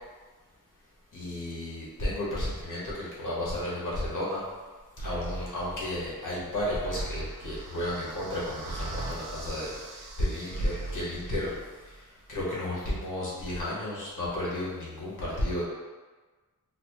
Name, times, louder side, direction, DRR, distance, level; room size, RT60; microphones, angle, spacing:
voice 1, 1.1-4.4 5.0-12.0 12.3-15.6, left 1 dB, 60° left, -7 dB, 1.2 m, -33 dB
sound 1, 5.0-10.1 10.4-12.2, right 2 dB, 25° left, 0.8 m, -40 dB
sound 2, 6.5-11.6, right 3 dB, 60° right, 0.5 m, -45 dB
4.1 x 2.2 x 3.0 m, 1.3 s
wide cardioid pair, 125°, 36 cm